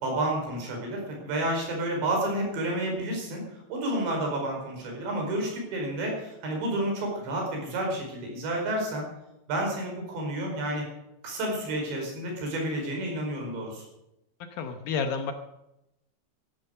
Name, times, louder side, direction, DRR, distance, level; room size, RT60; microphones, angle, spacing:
voice 1, 0.0-3.4 3.7-9.0 9.5-10.8 11.2-13.8, right 1 dB, 85° right, 0 dB, 7.2 m, -30 dB
voice 2, 14.5-15.3, left 5 dB, 70° left, 7 dB, 2.4 m, -30 dB
14.0 x 12.5 x 6.6 m, 0.88 s
omnidirectional pair, 4.9 m